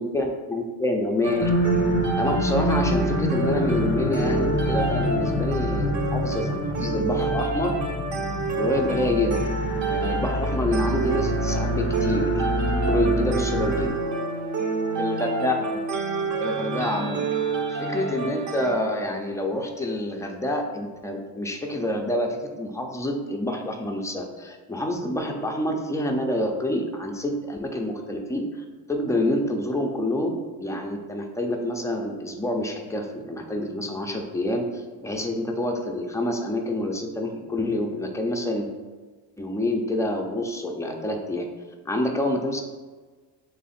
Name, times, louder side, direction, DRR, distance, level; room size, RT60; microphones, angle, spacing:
voice 1, 0.0-1.5 2.2-7.7 8.5-9.5 9.9-12.4 12.7-13.9 15.0-15.7 16.4-17.3 17.7-28.4 28.9-38.7 39.4-41.4 41.9-42.6, left 1 dB, 10° left, 2 dB, 0.4 m, -27 dB
sound 1, 1.2-18.7, right 4 dB, 40° right, 0.7 m, -28 dB
sound 2, 1.4-13.9, left 1 dB, 25° left, 0.8 m, -27 dB
3.5 x 3.2 x 4.2 m, 1.4 s
supercardioid pair, 110°, 42 cm